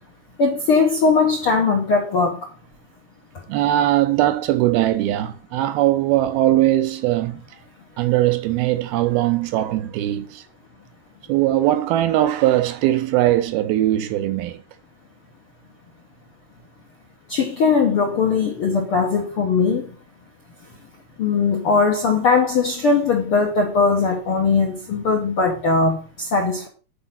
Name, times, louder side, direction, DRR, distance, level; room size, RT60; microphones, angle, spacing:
voice 1, 0.4-2.4 17.3-19.9 21.2-26.7, left 4 dB, 70° left, 1.3 m, -19 dB
voice 2, 3.5-7.4 8.0-10.4 11.3-14.6, right 14 dB, 80° right, 2.5 m, -20 dB
10.5 x 5.1 x 5.7 m
omnidirectional pair, 4.7 m